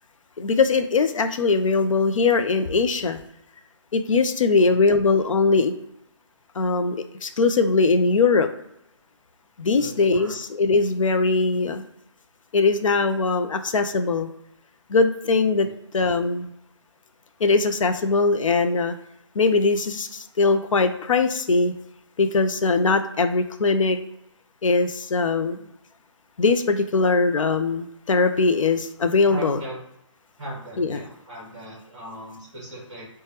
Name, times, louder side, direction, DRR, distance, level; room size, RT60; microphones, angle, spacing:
voice 1, 0.4-3.2 3.9-5.7 6.6-8.5 9.6-11.8 12.5-14.3 14.9-15.7 15.9-16.5 17.4-18.9 19.4-21.7 22.2-24.0 24.6-25.6 26.4-29.6 30.8-31.1, left 4 dB, 85° left, 8 dB, 0.4 m, -21 dB
voice 2, 4.5-5.1 9.7-10.3 15.5-15.8 29.3-29.8 30.4-33.1, right 1 dB, 15° right, -5 dB, 1.0 m, -39 dB
3.2 x 2.2 x 2.9 m, 0.80 s
hypercardioid pair, 175°, 16 cm